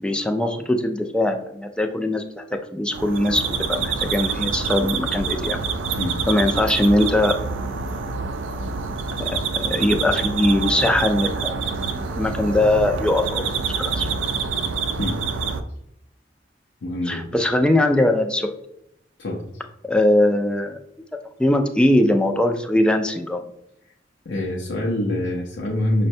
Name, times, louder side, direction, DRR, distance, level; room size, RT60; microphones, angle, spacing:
voice 1, 0.0-5.6 6.3-7.4 9.2-14.1 17.1-18.5 19.8-20.8 21.4-23.5, left 1 dB, 5° left, 5 dB, 0.3 m, -21 dB
sound 1, 2.9-15.6, right 5 dB, 80° right, 0.4 m, -26 dB
voice 2, 16.8-17.2 19.2-19.6 24.3-26.1, left 1 dB, 70° left, -2 dB, 0.5 m, -25 dB
6.0 x 2.1 x 2.6 m, 0.79 s
head